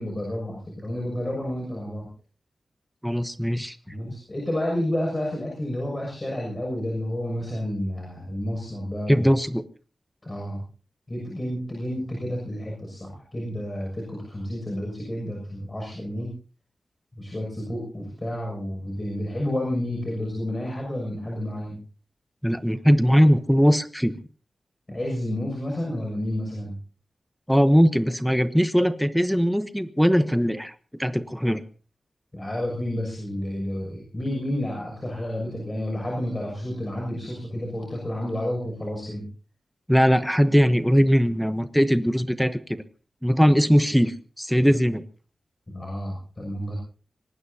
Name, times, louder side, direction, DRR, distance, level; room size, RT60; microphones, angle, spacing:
voice 1, 0.0-2.1 3.9-9.3 10.2-10.6 11.1-16.3 17.2-21.8 24.9-26.8 32.3-39.3 45.7-46.8, left 1 dB, 25° left, -1 dB, 6.7 m, -30 dB
voice 2, 3.0-3.8 9.1-9.6 22.4-24.2 27.5-30.7 31.0-31.6 39.9-42.8 43.2-45.0, equal, ahead, 12 dB, 1.0 m, -20 dB
25.0 x 19.5 x 2.8 m, 0.38 s
wide cardioid pair, 125°, 0 cm